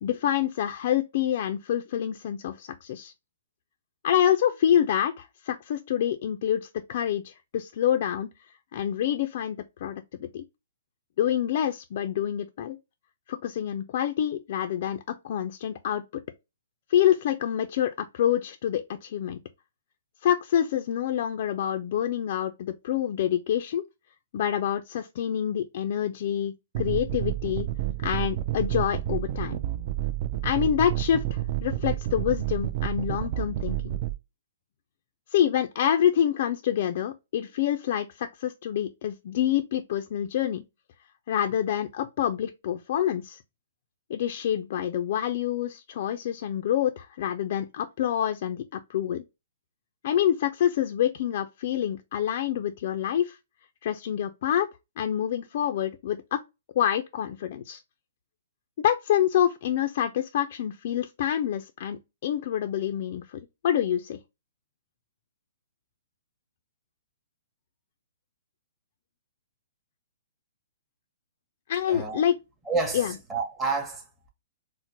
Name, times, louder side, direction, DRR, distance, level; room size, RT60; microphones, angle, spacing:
voice 1, 0.0-3.1 4.0-8.3 8.7-10.4 11.2-12.8 13.3-16.0 16.9-19.4 20.2-23.8 24.3-27.7 28.0-29.6 30.4-33.9 35.3-40.6 41.3-43.4 44.1-49.2 50.0-53.4 53.8-54.7 55.0-56.4 56.8-57.8 58.8-64.2 71.7-72.4 72.9-73.1, left 10 dB, 55° left, 0.4 m, -27 dB
sound 1, 26.7-34.1, right 14 dB, 45° right, 0.4 m, -30 dB
voice 2, 71.9-72.2 72.6-74.3, right 4 dB, 10° right, 0.9 m, -30 dB
4.3 x 2.0 x 2.8 m
hypercardioid pair, 135°, 0 cm